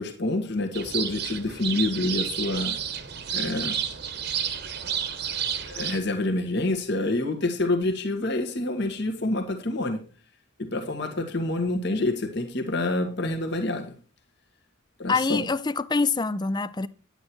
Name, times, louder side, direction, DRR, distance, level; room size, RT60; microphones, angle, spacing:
voice 1, 0.0-2.8 3.3-3.8 5.7-10.0 10.6-13.9 15.0-15.5, left 2 dB, 55° left, 1.6 m, -27 dB
sound 1, 0.7-6.0, right 8 dB, 55° right, 1.2 m, -31 dB
voice 2, 15.1-16.9, left 4 dB, 20° left, 0.5 m, -25 dB
10.0 x 8.9 x 4.5 m
head